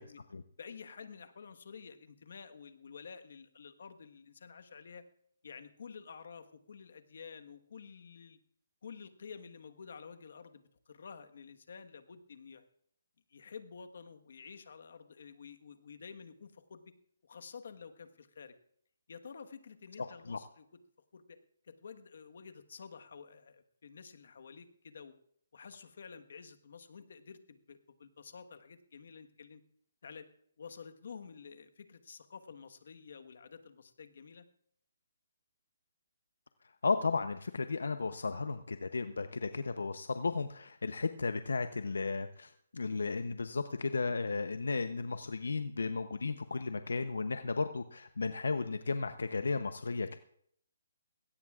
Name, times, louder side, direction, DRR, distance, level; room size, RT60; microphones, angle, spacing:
voice 1, 0.6-5.0 5.4-8.4 8.8-12.7 13.3-16.9 17.2-18.5 19.1-20.8 21.1-21.4 21.6-25.1 25.5-29.6 30.0-30.3 30.6-34.4, left 6 dB, 65° left, 7 dB, 1.3 m, -50 dB
voice 2, 20.0-20.4 36.8-50.2, left 4 dB, 85° left, 10 dB, 0.7 m, -34 dB
21.0 x 17.0 x 2.4 m, 0.67 s
hypercardioid pair, 160°, 0 cm